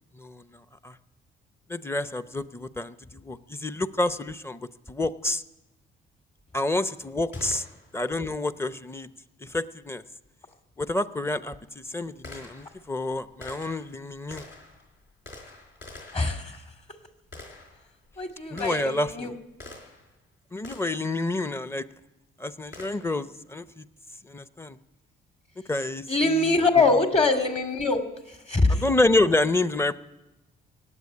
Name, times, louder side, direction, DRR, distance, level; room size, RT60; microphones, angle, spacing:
voice 1, 1.7-4.6 4.9-5.4 6.5-7.6 7.9-9.1 9.4-10.0 10.8-11.6 11.9-14.4 18.5-19.3 20.5-21.9 22.4-23.8 24.3-24.8 25.7-26.8 28.7-29.9, left 2 dB, 10° left, 13 dB, 0.7 m, -28 dB
Gunshot gunfire, 7.3-8.1 10.5-10.6 11.3-20.2 20.6-21.1 22.7-23.3, left 2 dB, 70° left, 4.4 m, -47 dB
voice 2, 16.1-16.6 18.2-19.3 26.1-28.0 28.5-28.8, left 3 dB, 30° left, 5 dB, 2.3 m, -23 dB
18.0 x 8.0 x 9.8 m, 0.98 s
cardioid pair, 90°, 20 cm